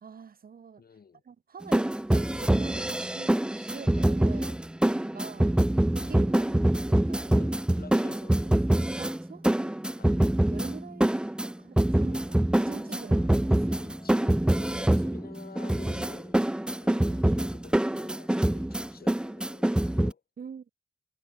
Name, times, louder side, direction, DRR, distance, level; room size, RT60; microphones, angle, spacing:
voice 1, 0.0-0.8 1.2-4.6 5.1-5.6 5.9-7.3 9.0-9.8 10.1-14.4 20.4-20.7, right 6 dB, 50° right, 0.9 m, -46 dB
voice 2, 0.8-1.2 7.3-8.7 10.0-10.2 11.8-12.1 12.9-16.4 16.8-20.2, left 6 dB, 55° left, 3.1 m, -50 dB
sound 1, 1.6-20.1, right 1 dB, 5° right, 0.4 m, -25 dB
sound 2, 11.5-16.2 16.6-16.7, left 3 dB, 30° left, 6.1 m, -61 dB
wide cardioid pair, 130°, 19 cm